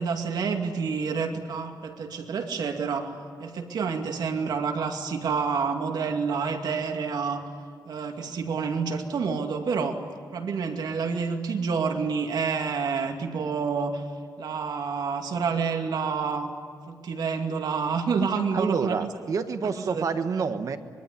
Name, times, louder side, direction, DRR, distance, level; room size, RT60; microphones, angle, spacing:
voice 1, 0.0-3.1 3.4-7.4 7.9-10.0 10.3-14.0 14.4-16.6 16.9-19.0 19.6-20.4, right 5 dB, 70° right, 4 dB, 2.5 m, -28 dB
voice 2, 18.5-20.8, right 5 dB, 50° right, 9 dB, 1.4 m, -28 dB
24.5 x 23.5 x 9.9 m, 2.1 s
wide cardioid pair, 155°, 7 cm